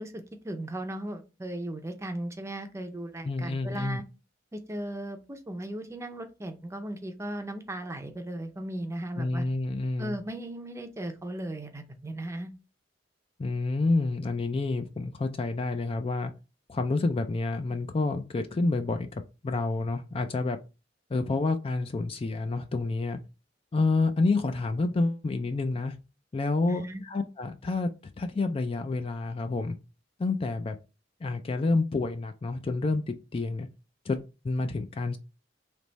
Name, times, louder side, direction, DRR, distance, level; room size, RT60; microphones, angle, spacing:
voice 1, 0.0-4.0 4.5-9.5 10.0-12.5 26.7-27.0, right 1 dB, 15° right, 7 dB, 0.6 m, -37 dB
voice 2, 3.2-4.0 9.2-10.2 13.4-16.3 16.7-20.6 21.1-23.2 23.7-25.9 26.3-27.9 28.2-29.8 30.2-30.8 31.2-33.0 33.3-33.7 34.1-34.2 34.4-35.2, left 3 dB, 30° left, 7 dB, 0.3 m, -28 dB
3.4 x 3.0 x 4.0 m, 0.30 s
head